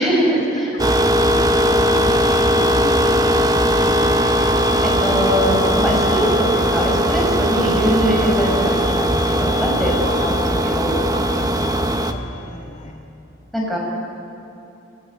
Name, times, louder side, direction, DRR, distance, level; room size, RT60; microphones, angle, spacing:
voice 1, 0.0-0.7 4.8-9.9 10.2-10.4 10.7-11.0 13.5-13.8, equal, ahead, -3 dB, 6.3 m, -21 dB
voice 2, 0.6-3.6 7.7-7.9 8.6-8.8 10.0-10.7 11.1-11.3 12.0-12.9, left 2 dB, 35° left, -2 dB, 2.2 m, -33 dB
sound 1, 0.8-12.1, equal, 20° right, 1.1 m, -18 dB
29.0 x 14.5 x 9.4 m, 2.9 s
head